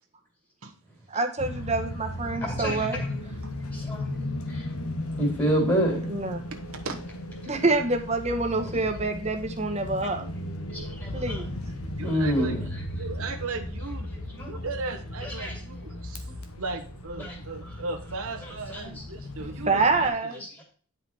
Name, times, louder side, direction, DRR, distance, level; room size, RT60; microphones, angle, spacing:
voice 1, 1.1-3.0 6.1-6.4 7.5-10.3 11.1-11.5 19.7-20.4, right 3 dB, 30° right, 4 dB, 1.1 m, -26 dB
sound 1, 1.4-20.1, left 1 dB, 90° left, 1.4 m, -36 dB
voice 2, 2.4-3.1 3.7-4.1 4.5-4.7 5.2-6.0 10.7-11.4 12.0-12.8 14.4-14.5 15.2-15.6 17.1-17.4 18.4-19.0 20.3-20.6, equal, 20° left, -1 dB, 2.2 m, -28 dB
voice 3, 6.5-7.0 12.0-14.1 14.4-16.2 16.6-20.1, right 3 dB, 75° right, 3 dB, 1.3 m, -36 dB
9.9 x 5.5 x 4.3 m, 0.42 s
head